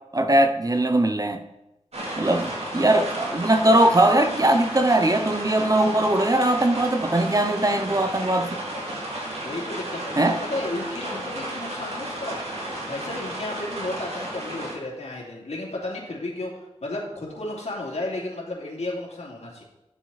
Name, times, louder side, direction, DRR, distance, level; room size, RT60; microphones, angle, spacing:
voice 1, 0.1-1.4 2.2-8.6 10.2-10.4, right 1 dB, 30° right, 0.8 m, -20 dB
sound 1, 1.9-14.7, right 1 dB, 65° right, 2.9 m, -33 dB
voice 2, 9.4-12.4 12.9-19.6, left 2 dB, 70° left, 3.0 m, -33 dB
12.0 x 7.2 x 4.2 m
wide cardioid pair, 50°, 12 cm